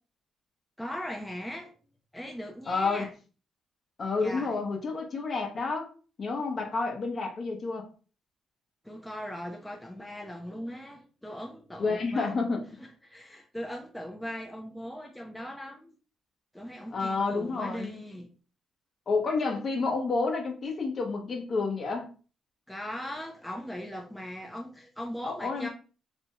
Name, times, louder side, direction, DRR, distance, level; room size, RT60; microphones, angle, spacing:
voice 1, 0.8-1.8 2.1-3.1 4.2-4.5 8.8-12.3 12.8-16.0 16.5-18.3 22.7-25.7, equal, 5° left, 0.5 m, -39 dB
voice 2, 2.7-3.1 4.0-5.9 6.2-7.9 11.8-12.8 16.9-18.0 19.1-22.1 25.2-25.7, left 4 dB, 45° left, 0.8 m, -30 dB
2.6 x 2.2 x 3.0 m
cardioid pair, 90°, 0 cm